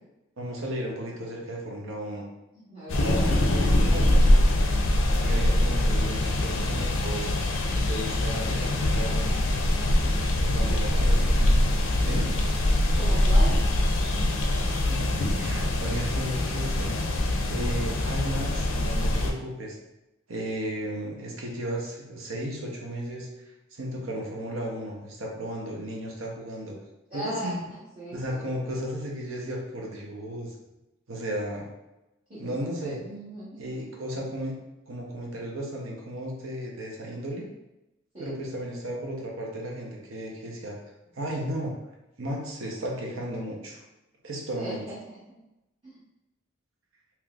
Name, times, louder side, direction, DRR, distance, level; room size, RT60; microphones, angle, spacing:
voice 1, 0.4-2.3 3.0-4.6 5.2-7.3 7.8-9.4 10.4-11.6 12.0-12.3 14.2-15.1 15.4-17.1 17.5-19.8 20.3-23.3 23.7-26.8 27.1-27.6 28.1-30.5 31.1-31.7 32.4-33.0 33.6-34.6 34.9-37.5 38.2-40.8 41.1-41.7 42.2-43.8 44.2-44.9, right 1 dB, 75° right, -1 dB, 0.7 m, -34 dB
voice 2, 2.6-3.3 9.7-10.2 10.6-11.0 12.9-13.6 27.1-27.6 28.0-28.5 32.3-33.6 38.1-38.3 44.6-45.4 45.8-46.0, right 1 dB, 25° right, -12 dB, 0.9 m, -39 dB
sound 1, 2.9-19.3, left 1 dB, 70° left, 0.5 m, -23 dB
3.7 x 2.9 x 2.3 m, 0.95 s
head